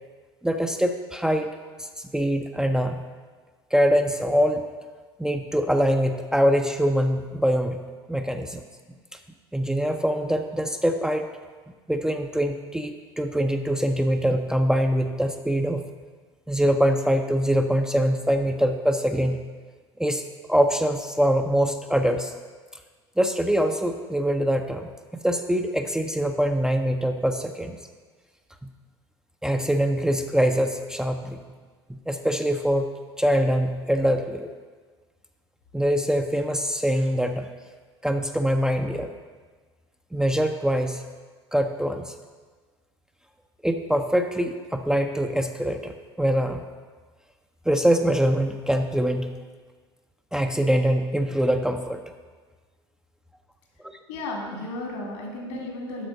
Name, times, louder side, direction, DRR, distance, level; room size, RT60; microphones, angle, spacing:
voice 1, 0.4-1.5 1.8-1.9 2.1-3.0 3.7-4.7 5.2-7.8 8.1-8.6 9.5-11.3 11.9-15.8 16.5-19.4 20.0-22.3 23.2-27.8 28.6-28.7 29.4-31.4 31.9-32.9 33.2-34.5 35.7-37.5 38.0-39.1 40.1-41.0 41.5-42.1 43.6-46.7 47.7-49.4 50.3-52.0 55.5-55.6, equal, 5° right, 5 dB, 0.5 m, -23 dB
voice 2, 54.1-56.1, left 2 dB, 70° left, 0 dB, 2.3 m, -34 dB
8.0 x 6.2 x 5.3 m, 1.5 s
hypercardioid pair, 70°, 14 cm